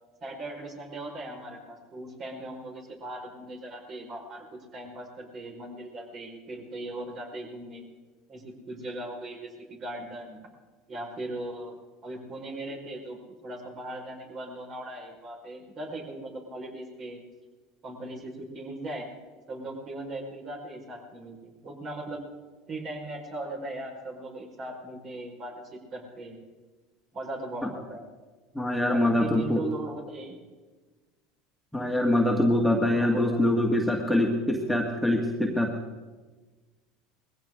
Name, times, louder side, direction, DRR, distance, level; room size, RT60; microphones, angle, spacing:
voice 1, 0.2-7.8 8.3-10.4 10.9-17.2 17.8-19.1 19.5-22.2 22.7-26.4 27.1-28.0 28.9-30.3 32.9-33.4, right 1 dB, 40° right, 1 dB, 4.9 m, -39 dB
voice 2, 28.5-29.6 31.7-35.7, left 1 dB, ahead, 0 dB, 1.9 m, -24 dB
21.0 x 16.0 x 3.8 m, 1.3 s
hypercardioid pair, 90°, 0 cm